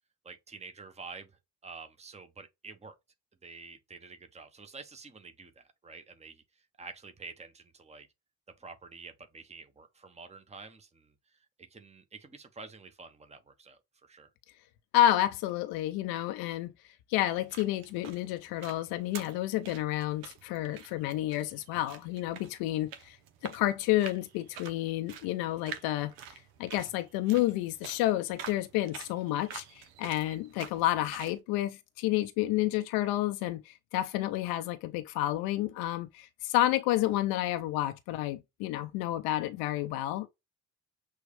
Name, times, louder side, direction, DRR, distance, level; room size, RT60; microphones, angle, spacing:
voice 1, 0.2-2.9 3.4-8.1 8.6-14.3, right 4 dB, 20° right, 1.0 m, -49 dB
voice 2, 14.9-23.2 23.4-26.1 26.6-40.3, left 14 dB, 75° left, 0.6 m, -30 dB
sound 1, 17.3-31.4, right 8 dB, 75° right, 0.9 m, -48 dB
6.3 x 2.5 x 3.3 m
hypercardioid pair, 55°, 37 cm